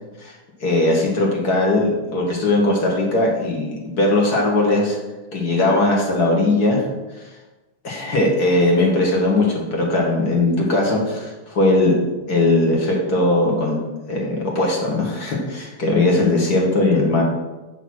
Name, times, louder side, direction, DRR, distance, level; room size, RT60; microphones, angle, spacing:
voice 1, 0.6-5.0 5.3-6.8 7.8-12.0 12.3-13.8 14.1-17.2, left 2 dB, 50° left, -2 dB, 2.2 m, -19 dB
9.2 x 4.1 x 6.1 m, 1.1 s
omnidirectional pair, 2.3 m